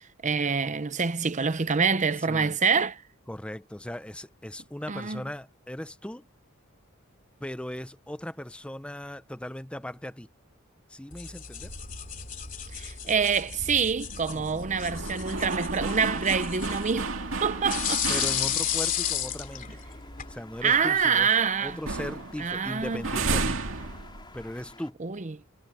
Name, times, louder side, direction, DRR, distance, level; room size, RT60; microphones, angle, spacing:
voice 1, 0.0-3.0 4.9-5.2 12.7-17.1 17.4-18.0 20.6-21.8 22.4-23.0 25.0-25.3, right 6 dB, 35° right, 0.8 m, -26 dB
voice 2, 2.3-2.6 3.3-6.3 7.4-10.3 10.9-11.7 14.3-14.6 18.1-19.8 20.3-21.3 21.6-23.6 24.3-25.0, left 1 dB, 5° left, 0.7 m, -38 dB
sound 1, 11.1-20.3, left 9 dB, 40° left, 2.9 m, -34 dB
sound 2, 11.6-18.9 19.4-19.5 19.8-21.4 21.7-24.7, right 3 dB, 65° right, 2.4 m, -34 dB
sound 3, 16.5-24.9, left 3 dB, 20° left, 4.7 m, -50 dB
head